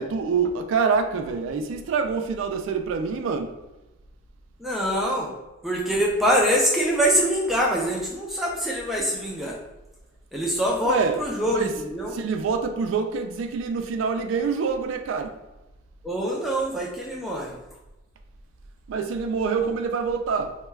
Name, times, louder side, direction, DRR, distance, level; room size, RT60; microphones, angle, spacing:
voice 1, 0.0-3.5 10.8-11.2 11.5-11.7 12.1-15.4 18.9-20.5, right 5 dB, 80° right, 0.3 m, -26 dB
voice 2, 4.6-5.4 5.6-9.6 10.3-12.2 16.0-17.6, equal, ahead, 0.4 m, -24 dB
2.2 x 2.2 x 3.2 m
head